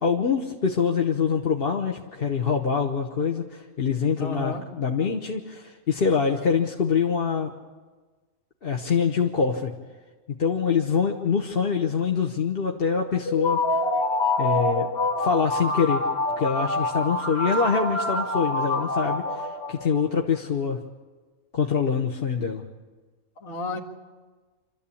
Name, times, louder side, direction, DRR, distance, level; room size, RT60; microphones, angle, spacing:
voice 1, 0.0-7.5 8.6-9.7 10.4-13.6 14.4-14.9 15.2-16.0 16.4-20.8 21.5-22.6, left 6 dB, 45° left, 2 dB, 1.2 m, -25 dB
voice 2, 4.2-4.6 23.4-23.8, left 3 dB, 65° left, 1 dB, 2.4 m, -32 dB
sound 1, 13.3-20.1, left 2 dB, 85° left, 2.8 m, -26 dB
27.0 x 13.5 x 8.5 m, 1.4 s
omnidirectional pair, 1.5 m